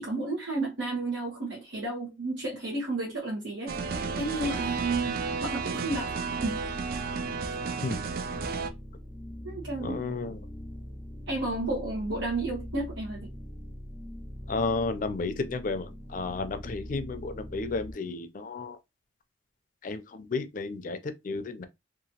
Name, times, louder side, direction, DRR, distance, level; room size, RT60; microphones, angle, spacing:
voice 1, 0.0-3.8 4.2-6.1 6.4-6.7 9.4-10.0 11.3-13.3, right 2 dB, 90° right, 1.0 m, -32 dB
sound 1, 3.7-17.9, equal, 35° right, 0.9 m, -42 dB
sound 2, 3.7-8.7, right 5 dB, 50° right, 0.3 m, -33 dB
voice 2, 9.8-10.4 14.5-18.8 19.8-21.7, left 3 dB, 45° left, 0.4 m, -32 dB
2.8 x 2.4 x 2.8 m
head